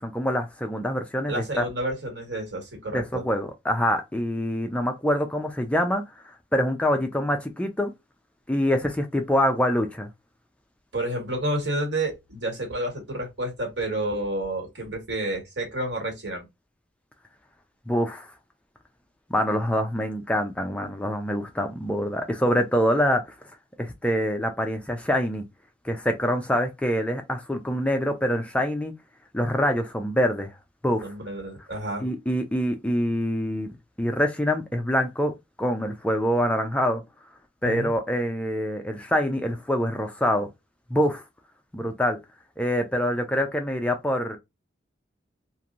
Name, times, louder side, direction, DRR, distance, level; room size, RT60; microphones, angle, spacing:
voice 1, 0.0-1.6 2.9-6.0 6.5-7.9 8.5-10.1 17.9-18.3 19.3-23.2 23.8-25.5 25.8-28.9 29.3-30.5 30.8-31.1 32.0-33.7 34.0-37.0 37.6-40.5 40.9-41.2 41.7-42.2 42.6-44.4, equal, 5° left, 0.4 m, -25 dB
voice 2, 1.3-3.2 10.9-16.4 31.0-32.0 37.6-37.9, right 1 dB, 75° right, 1.6 m, -30 dB
3.0 x 2.6 x 2.5 m
head